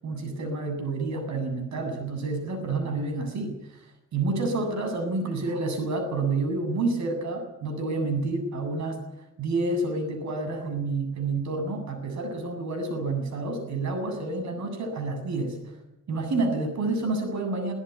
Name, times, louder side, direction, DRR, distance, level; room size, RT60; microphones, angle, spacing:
voice 1, 0.0-3.9 4.1-9.0 9.4-15.8 16.1-17.7, right 3 dB, 65° right, 7 dB, 7.9 m, -29 dB
24.0 x 15.0 x 9.7 m, 0.86 s
cardioid pair, 90°, 30 cm